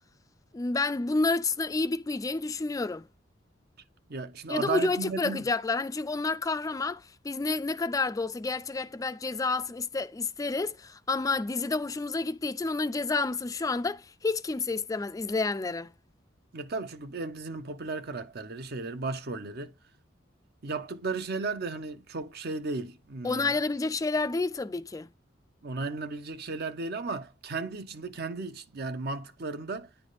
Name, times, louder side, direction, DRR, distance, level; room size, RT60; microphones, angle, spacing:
voice 1, 0.5-3.0 4.5-15.9 23.2-25.1, left 3 dB, 20° left, 0.3 m, -29 dB
voice 2, 4.1-5.5 16.5-19.7 20.6-23.5 25.6-29.9, right 3 dB, 55° right, 0.7 m, -35 dB
10.0 x 3.4 x 3.9 m
head